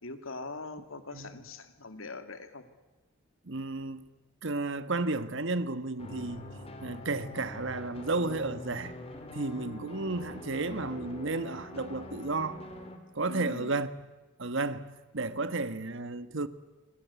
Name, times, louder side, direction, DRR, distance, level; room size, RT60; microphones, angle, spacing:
voice 1, 0.0-2.6 13.3-13.7, left 3 dB, 70° left, 2.6 m, -42 dB
voice 2, 3.5-4.0 4.4-9.0 9.3-12.6 13.1-13.9 14.4-16.5, right 3 dB, 60° right, 1.5 m, -33 dB
sound 1, 6.0-13.0, left 1 dB, 30° left, 3.9 m, -44 dB
27.5 x 25.0 x 8.4 m
head